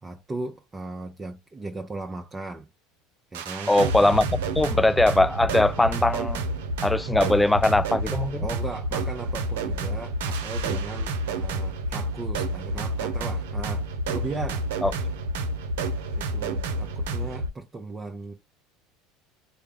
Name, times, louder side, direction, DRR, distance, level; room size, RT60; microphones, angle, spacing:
voice 1, 0.0-2.7 3.3-3.7 8.4-14.7 16.2-18.3, right 3 dB, 20° right, 0.7 m, -37 dB
sound 1, 3.3-17.5, right 1 dB, 85° right, 0.7 m, -29 dB
voice 2, 3.7-4.3 4.6-6.4 6.8-8.5 14.8-14.9, left 2 dB, 10° left, 0.4 m, -21 dB
3.3 x 2.2 x 3.7 m
supercardioid pair, 95°, 0 cm